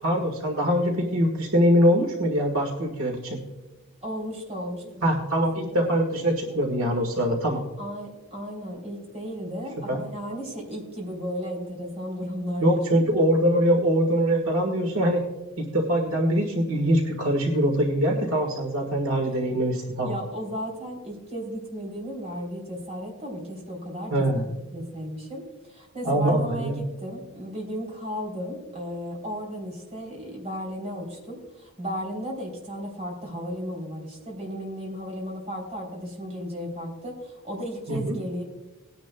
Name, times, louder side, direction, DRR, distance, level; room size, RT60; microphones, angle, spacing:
voice 1, 0.0-3.4 5.0-7.6 9.9-10.0 12.6-15.2 15.6-20.1 24.1-24.4 26.0-26.8 37.9-38.1, equal, 70° right, 2 dB, 1.6 m, -23 dB
voice 2, 4.0-5.1 5.6-6.0 7.8-12.8 20.0-25.4 25.7-38.4, equal, 30° right, 0 dB, 3.4 m, -34 dB
19.0 x 10.0 x 2.3 m, 1.1 s
head